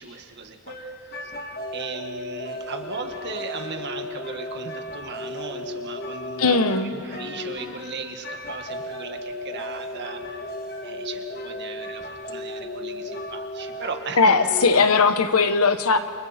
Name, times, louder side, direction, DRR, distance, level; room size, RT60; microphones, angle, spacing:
voice 1, 0.0-1.3 1.7-10.5 10.8-14.4 14.8-14.9, right 4 dB, 50° right, 5 dB, 1.8 m, -37 dB
sound 1, 0.7-14.9, left 1 dB, 45° left, 2.3 m, -35 dB
voice 2, 6.4-6.9 14.2-16.0, left 4 dB, 80° left, 9 dB, 1.3 m, -19 dB
29.0 x 28.5 x 4.4 m, 2.4 s
head